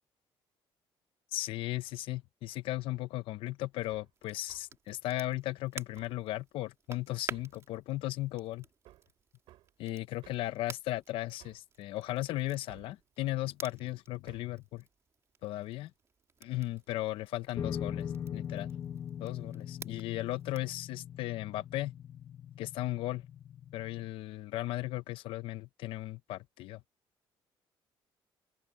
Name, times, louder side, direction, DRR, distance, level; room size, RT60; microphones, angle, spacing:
voice 1, 1.3-8.6 9.8-14.8 15.4-15.9 16.4-18.7 19.2-21.9 22.6-23.2 23.7-26.8, left 16 dB, 85° left, 0.7 m, -36 dB
Hammer, 3.9-4.1 4.5-4.7 6.0-6.2 7.3-7.6 8.9-9.1 9.5-9.7 10.2-10.5 11.4-11.7 12.7-13.0 14.3-14.6, right 15 dB, 90° right, 4.5 m, -58 dB
Crackle, 4.1-20.8, right 5 dB, 35° right, 3.0 m, -52 dB
sound 1, 17.6-24.1, left 9 dB, 40° left, 1.4 m, -41 dB
cardioid pair, 140°, 9 cm